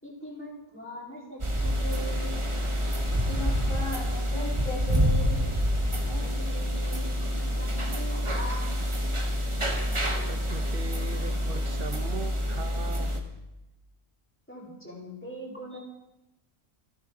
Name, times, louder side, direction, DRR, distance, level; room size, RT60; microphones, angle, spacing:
voice 1, 0.0-2.4 6.2-9.1 14.5-15.8, right 1 dB, 10° left, -6 dB, 4.2 m, -42 dB
sound 1, 1.4-13.2, equal, 25° right, 1.5 m, -27 dB
voice 2, 3.3-5.5 6.0-6.2, left 2 dB, 50° left, -2 dB, 4.2 m, -37 dB
voice 3, 10.3-13.2, right 4 dB, 55° right, 8 dB, 1.3 m, -39 dB
28.0 x 10.0 x 3.9 m, 0.95 s
omnidirectional pair, 1.1 m